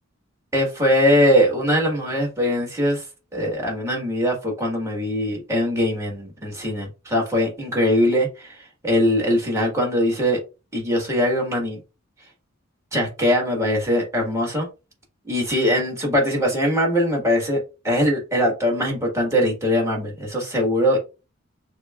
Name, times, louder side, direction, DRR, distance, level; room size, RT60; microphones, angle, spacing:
voice 1, 0.5-3.0 3.3-8.5 8.8-10.4 10.7-11.8 12.9-14.7 15.3-21.0, equal, 15° right, 1.6 m, -21 dB
6.5 x 2.2 x 2.4 m
head